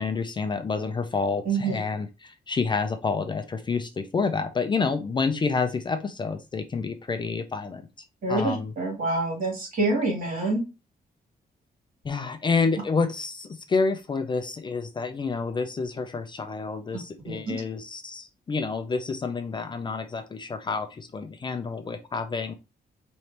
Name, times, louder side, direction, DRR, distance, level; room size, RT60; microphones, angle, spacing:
voice 1, 0.0-7.8 8.3-8.7 12.0-22.5, left 4 dB, 30° left, 8 dB, 0.5 m, -28 dB
voice 2, 1.4-1.8 8.2-10.6 17.2-17.6, right 2 dB, 55° right, 0 dB, 2.6 m, -26 dB
4.8 x 3.1 x 2.8 m, 0.27 s
wide cardioid pair, 175°, 16 cm